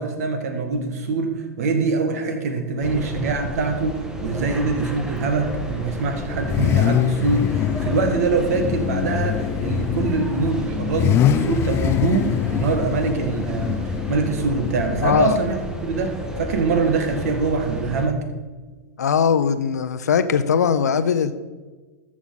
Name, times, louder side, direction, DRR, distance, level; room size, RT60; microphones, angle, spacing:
voice 1, 0.0-18.2, right 3 dB, 65° right, 7 dB, 1.6 m, -24 dB
sound 1, 2.8-18.1, equal, 5° right, 1.2 m, -32 dB
Car / Idling / Accelerating revving vroom, 4.3-16.4, left 11 dB, 30° left, 0.3 m, -25 dB
voice 2, 15.0-15.4 19.0-21.3, left 7 dB, 80° left, 12 dB, 0.7 m, -20 dB
13.5 x 6.1 x 4.0 m, 1.3 s
hypercardioid pair, 105°, 9 cm